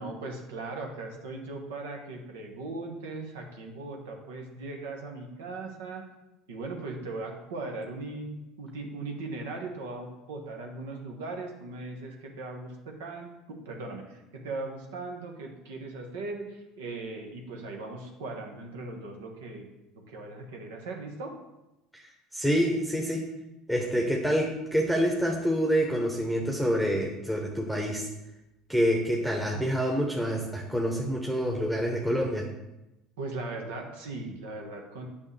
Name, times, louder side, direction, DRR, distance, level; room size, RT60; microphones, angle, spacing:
voice 1, 0.0-6.0 6.5-19.7 19.9-21.3 33.2-35.1, right 3 dB, 75° right, 2 dB, 1.2 m, -38 dB
voice 2, 22.3-23.3 23.7-28.1 28.7-32.5, equal, 5° right, 0 dB, 1.1 m, -27 dB
8.7 x 5.7 x 3.3 m, 0.96 s
hypercardioid pair, 75°, 0 cm